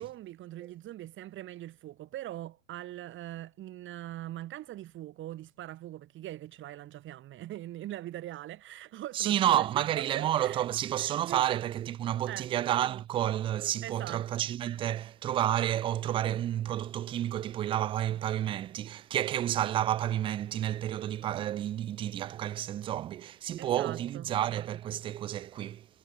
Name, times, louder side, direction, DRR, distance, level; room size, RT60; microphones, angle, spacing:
voice 1, 0.0-10.7 11.2-11.6 12.3-12.5 13.8-14.5 23.6-24.3, right 14 dB, 30° right, 6.7 m, -42 dB
voice 2, 9.1-25.9, right 12 dB, 15° right, 0.5 m, -30 dB
hypercardioid pair, 130°, 40 cm